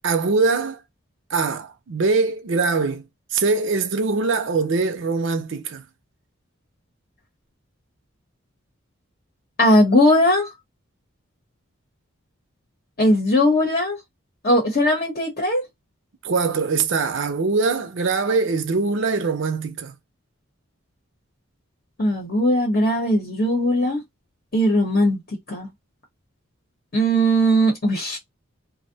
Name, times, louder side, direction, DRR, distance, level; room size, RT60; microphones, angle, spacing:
voice 1, 0.0-0.8 1.3-3.0 3.3-5.8 16.2-19.9, right 4 dB, 60° right, 0.5 m, -22 dB
voice 2, 9.6-10.5 13.0-14.0 14.4-15.6 22.0-24.0 24.5-25.7 26.9-28.2, equal, 45° left, 0.8 m, -19 dB
2.6 x 2.0 x 2.7 m
head